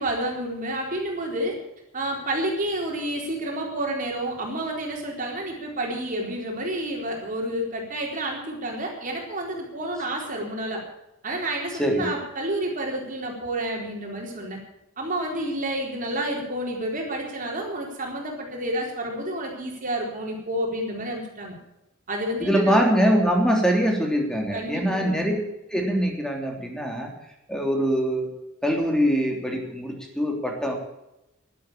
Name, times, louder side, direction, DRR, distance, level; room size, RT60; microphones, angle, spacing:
voice 1, 0.0-1.6 1.9-10.8 11.2-14.6 15.0-21.6 22.1-22.8 24.5-25.3, right 1 dB, 40° right, 0 dB, 4.1 m, -30 dB
voice 2, 22.4-25.3 25.7-27.1 27.5-28.3 28.6-30.8, equal, 5° left, 1 dB, 3.2 m, -23 dB
11.5 x 11.5 x 8.7 m, 0.88 s
head